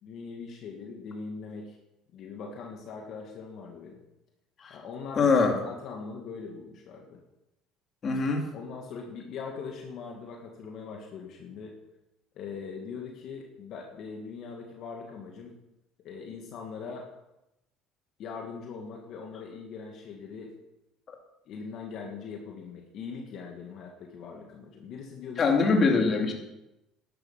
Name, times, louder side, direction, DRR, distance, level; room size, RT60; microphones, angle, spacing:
voice 1, 0.0-1.8 2.1-4.0 4.7-7.2 8.5-11.7 12.4-15.6 16.0-17.1 18.2-20.5 21.5-25.5, left 5 dB, 55° left, 1 dB, 2.2 m, -41 dB
voice 2, 5.2-5.6 8.0-8.5 25.4-26.3, left 4 dB, 35° left, 2 dB, 2.8 m, -23 dB
12.0 x 11.5 x 5.8 m, 0.91 s
cardioid pair, 120°, 0 cm